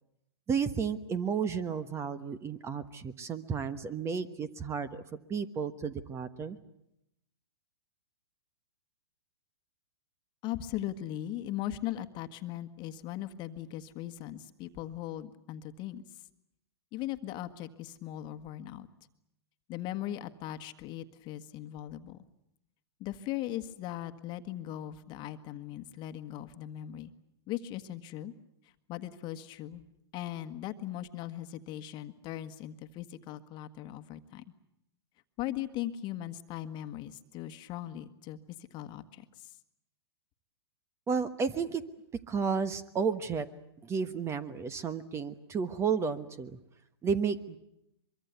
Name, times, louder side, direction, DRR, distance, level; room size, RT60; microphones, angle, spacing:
voice 1, 0.5-5.0 5.3-6.6 41.1-41.8 42.3-43.5 43.8-46.6 47.0-47.6, right 6 dB, 20° right, 14 dB, 1.2 m, -32 dB
voice 2, 10.4-16.0 16.9-18.9 19.7-22.2 23.0-27.1 27.5-28.3 28.6-29.8 30.1-34.4 35.4-38.4 38.7-39.5, left 13 dB, 35° left, 9 dB, 1.5 m, -39 dB
23.5 x 23.5 x 8.2 m, 0.82 s
hypercardioid pair, 125°, 14 cm